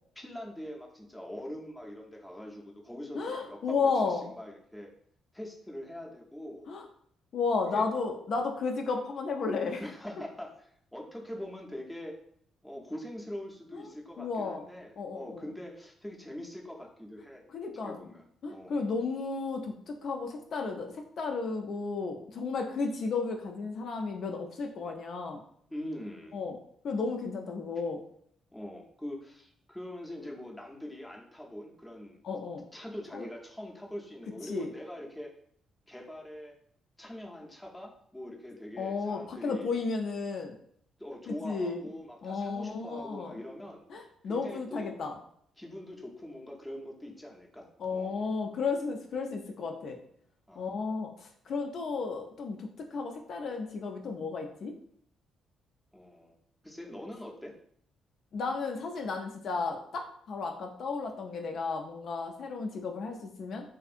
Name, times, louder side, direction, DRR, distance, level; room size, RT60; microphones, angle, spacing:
voice 1, 0.2-4.9 5.3-6.7 7.6-7.9 9.8-12.2 12.6-17.4 17.8-18.9 25.7-26.4 28.5-32.2 32.7-35.3 35.9-36.6 37.0-39.7 41.0-43.8 44.2-45.0 45.6-48.2 50.5-50.8 55.9-56.4 56.6-57.5, left 1 dB, 5° left, 0 dB, 0.5 m, -43 dB
voice 2, 3.1-4.3 6.7-6.8 7.3-9.8 13.7-13.8 14.2-14.6 15.0-15.4 17.5-18.0 18.4-25.4 26.3-26.6 26.8-28.0 32.2-32.6 33.1-33.3 34.5-34.7 38.8-40.5 41.3-41.8 42.2-43.3 43.9-45.1 47.8-50.0 50.6-54.7 58.3-63.8, left 4 dB, 60° left, 3 dB, 0.3 m, -33 dB
2.5 x 2.5 x 2.4 m, 0.67 s
cardioid pair, 90°, 0 cm